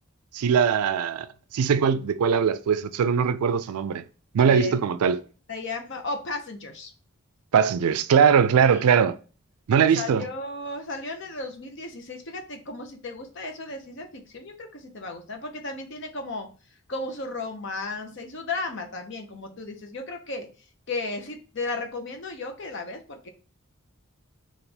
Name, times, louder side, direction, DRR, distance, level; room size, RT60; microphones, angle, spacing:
voice 1, 0.3-1.3 1.5-4.0 4.3-5.2 7.5-9.1 9.7-10.2, right 7 dB, 80° right, 0.4 m, -21 dB
voice 2, 4.4-4.7 5.5-6.9 8.6-8.9 9.9-16.5 16.9-20.5 20.9-23.3, left 2 dB, 55° left, 0.7 m, -34 dB
3.4 x 2.5 x 4.1 m
head